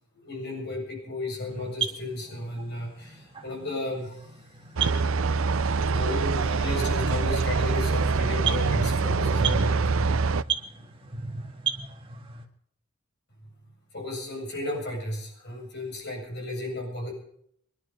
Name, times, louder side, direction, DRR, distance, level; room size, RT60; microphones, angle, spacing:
voice 1, 0.2-5.2 5.9-10.3 10.6-11.1 13.9-17.1, left 1 dB, 50° left, -1 dB, 7.8 m, -34 dB
sound 1, 1.5-12.5, right 7 dB, 25° right, 1.8 m, -36 dB
sound 2, 4.8-10.4, right 4 dB, 65° right, 0.5 m, -25 dB
23.0 x 11.5 x 5.3 m, 0.67 s
head